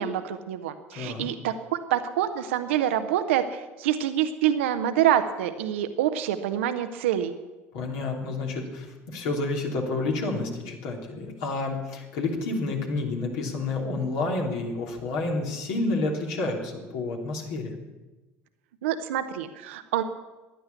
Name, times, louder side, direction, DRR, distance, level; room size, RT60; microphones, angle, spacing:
voice 1, 0.0-7.4 18.8-20.0, right 11 dB, 70° right, 9 dB, 0.8 m, -26 dB
voice 2, 0.9-1.3 7.7-17.7, left 3 dB, 60° left, 1 dB, 3.1 m, -29 dB
15.5 x 11.0 x 7.0 m, 1.1 s
figure-of-eight pair, 65°, 7 cm